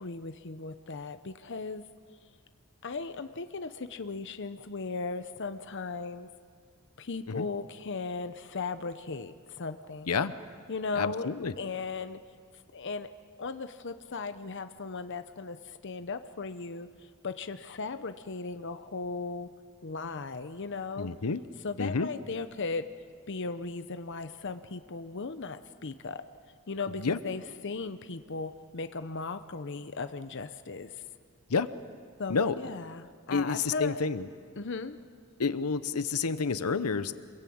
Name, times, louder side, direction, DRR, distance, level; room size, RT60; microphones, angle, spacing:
voice 1, 0.0-1.8 2.8-6.3 7.0-10.1 10.7-11.3 11.6-12.2 12.7-13.1 13.4-19.5 19.8-21.1 21.6-22.9 23.3-26.2 26.7-31.0 32.2-34.0 34.6-35.0, left 4 dB, 55° left, 10 dB, 0.8 m, -37 dB
voice 2, 11.0-11.5 21.0-21.4 21.8-22.1 27.0-27.2 31.5-31.7 32.3-32.6 33.3-34.3 35.4-37.1, left 4 dB, 85° left, 13 dB, 0.8 m, -29 dB
27.0 x 22.0 x 8.7 m, 2.1 s
head